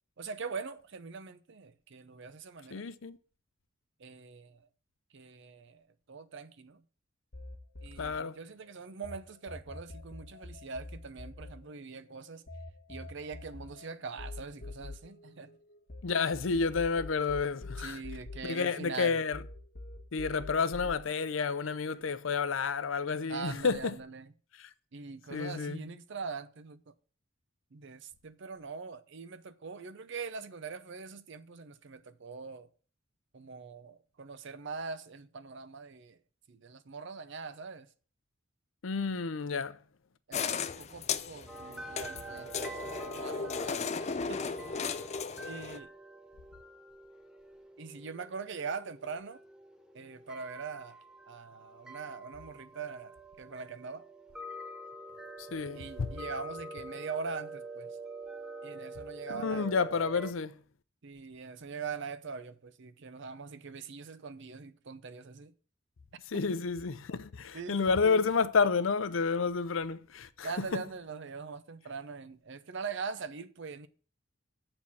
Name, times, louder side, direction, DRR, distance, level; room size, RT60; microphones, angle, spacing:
voice 1, 0.2-2.9 4.0-4.7 5.1-6.8 7.8-12.4 12.9-15.6 17.8-19.2 23.3-24.3 24.9-26.9 27.7-32.7 33.3-36.2 36.5-37.9 40.3-45.0 45.4-45.9 47.8-49.4 49.9-51.0 51.3-54.1 55.7-58.0 58.6-60.2 61.0-65.5 66.3-66.4 67.5-68.3 70.4-73.9, right 5 dB, 65° right, 0.7 m, -42 dB
voice 2, 2.7-3.2 8.0-8.4 16.0-18.0 18.4-19.4 20.1-24.0 24.6-24.7 25.3-25.8 38.8-39.8 55.4-56.1 59.3-60.5 66.3-70.8, left 5 dB, 80° left, 0.6 m, -30 dB
sound 1, 7.3-9.2 9.5-16.0 16.3-19.0 19.3-21.0, left 2 dB, 60° left, 1.3 m, -45 dB
sound 2, 40.3-45.8, left 6 dB, 35° left, 0.5 m, -36 dB
sound 3, 41.5-60.3, right 2 dB, 5° right, 0.6 m, -46 dB
7.7 x 4.4 x 7.0 m
head